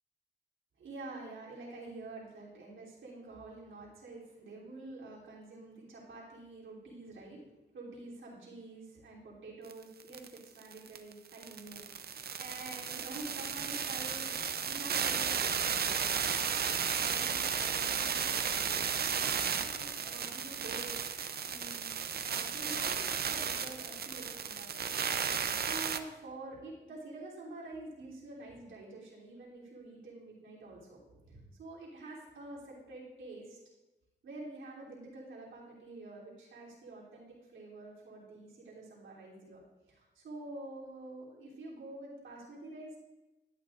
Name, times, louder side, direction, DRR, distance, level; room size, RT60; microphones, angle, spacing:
voice 1, 0.8-7.5 7.7-16.3 16.6-21.0 21.5-22.0 22.3-33.6 34.2-39.6 39.9-43.0, right 2 dB, 90° right, -6 dB, 3.2 m, -48 dB
sound 1, 9.7-9.8 10.0-26.0, right 7 dB, 55° right, 0.6 m, -34 dB
12.0 x 9.1 x 2.5 m, 1.1 s
cardioid pair, 90°, 19 cm